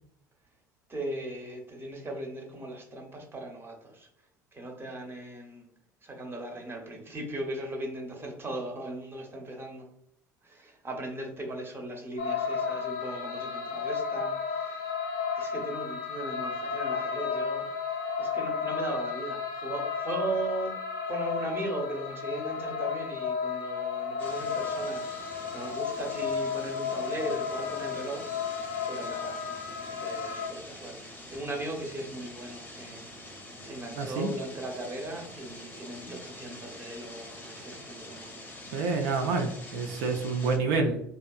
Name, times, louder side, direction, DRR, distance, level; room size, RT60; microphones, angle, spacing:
voice 1, 0.9-4.1 4.5-5.7 6.0-9.9 10.4-14.9 15.4-17.7 18.2-20.7 21.1-29.4 29.8-38.4, right 1 dB, 25° right, 2 dB, 0.7 m, -38 dB
sound 1, 12.2-30.5, left 6 dB, 85° left, 0.4 m, -33 dB
sound 2, 24.2-40.6, left 1 dB, 15° left, 0.6 m, -46 dB
voice 2, 34.0-34.3 38.7-41.0, right 4 dB, 70° right, 4 dB, 0.4 m, -28 dB
2.8 x 2.3 x 2.2 m, 0.76 s
figure-of-eight pair, 65°, 10 cm